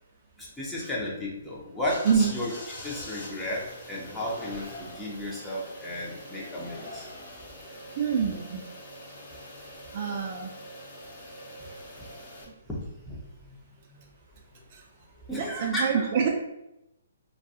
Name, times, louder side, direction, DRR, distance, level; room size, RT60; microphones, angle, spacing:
voice 1, 0.4-2.5 2.8-7.1 12.7-13.6 13.9-14.0 15.3-16.1, left 1 dB, 5° left, -6 dB, 0.6 m, -34 dB
sound 1, 1.8-12.4, left 1 dB, 35° left, 0.9 m, -43 dB
voice 2, 8.0-8.6 9.9-10.5 14.7-14.8 15.3-16.3, right 6 dB, 45° right, 0 dB, 0.4 m, -26 dB
2.3 x 2.2 x 2.7 m, 0.85 s
figure-of-eight pair, 135°, 0 cm